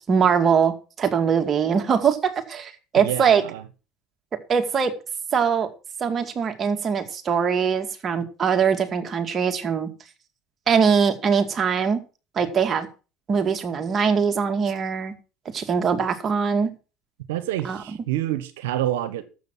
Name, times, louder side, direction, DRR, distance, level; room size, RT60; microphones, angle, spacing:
voice 1, 0.1-3.4 4.5-4.9 5.3-5.7 6.0-9.9 10.7-12.0 12.4-12.9 13.3-15.1 15.5-16.7 17.6-17.8, right 6 dB, 35° right, 2.3 m, -22 dB
voice 2, 2.9-3.6 17.3-19.2, right 13 dB, 85° right, 1.2 m, -27 dB
12.0 x 7.9 x 6.2 m
hypercardioid pair, 85°, 0 cm